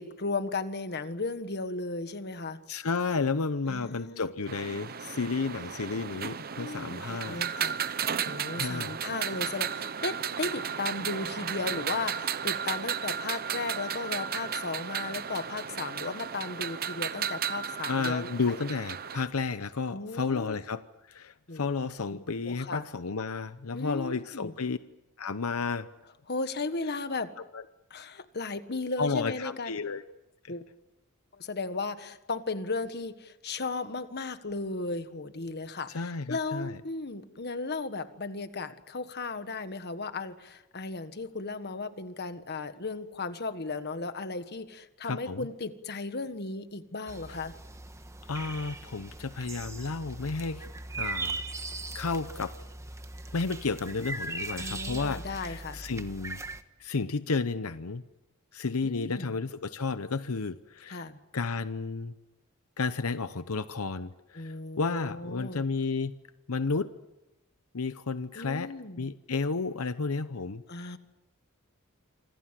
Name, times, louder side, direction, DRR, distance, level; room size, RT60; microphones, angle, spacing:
voice 1, 0.0-2.6 3.7-4.3 6.6-7.9 8.2-18.6 19.9-20.6 21.5-21.7 22.1-22.8 23.7-24.5 26.3-27.3 27.9-29.7 30.5-30.6 31.3-47.5 54.6-55.8 58.8-59.3 60.9-61.2 64.4-65.6 68.3-69.1 70.7-71.0, left 3 dB, 50° left, 10 dB, 1.6 m, -35 dB
voice 2, 2.7-7.4 8.6-8.9 17.9-20.8 21.1-24.8 25.2-25.9 27.5-27.6 29.0-30.0 30.4-30.5 35.9-36.8 45.0-45.5 48.3-50.7 51.0-51.4 51.9-52.5 53.3-56.4 56.8-58.0 58.5-61.1 61.3-62.1 62.8-66.2 66.5-66.9 67.7-68.7 69.0-71.0, left 4 dB, 85° left, 12 dB, 0.8 m, -32 dB
sound 1, 4.5-19.3, right 8 dB, 45° right, 0.9 m, -34 dB
sound 2, 47.1-56.6, right 3 dB, 15° right, 1.4 m, -39 dB
27.0 x 25.0 x 7.6 m, 1.0 s
head